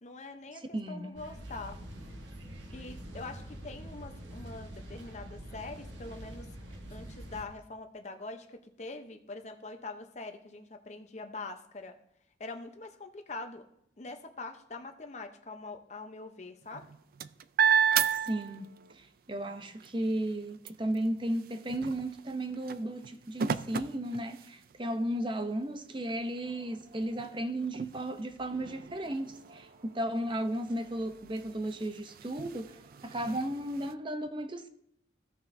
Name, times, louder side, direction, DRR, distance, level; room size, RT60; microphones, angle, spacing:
voice 1, 0.0-1.8 2.7-6.5 6.9-11.9 12.4-13.6 14.0-16.8, left 3 dB, 40° left, 0.7 m, -44 dB
voice 2, 0.5-1.1 18.1-34.7, right 1 dB, 25° right, 0.7 m, -35 dB
sound 1, 1.2-7.5, equal, 80° right, 1.3 m, -45 dB
sound 2, 16.6-19.0 19.4-24.9 25.5-25.6 26.0-33.9, right 7 dB, 50° right, 0.3 m, -34 dB
15.5 x 5.8 x 2.7 m
head